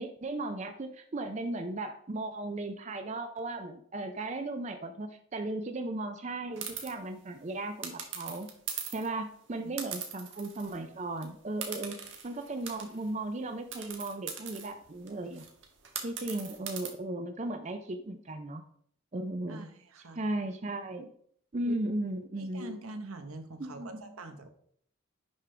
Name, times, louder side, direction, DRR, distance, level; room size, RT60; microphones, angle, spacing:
voice 1, 0.0-8.5 8.8-12.0 12.2-15.5 16.0-18.6 19.1-19.7 20.0-21.1 21.5-22.8 23.6-24.0, right 2 dB, 35° right, 7 dB, 0.4 m, -36 dB
sound 1, 6.6-6.9 7.8-9.1 9.8-10.8 11.1-11.2 11.6-13.1 13.7-16.9, right 7 dB, 60° right, 1.3 m, -40 dB
voice 2, 19.5-20.2 21.6-21.8 22.4-24.5, right 2 dB, 85° right, 7 dB, 1.0 m, -44 dB
10.5 x 3.7 x 3.3 m, 0.63 s
head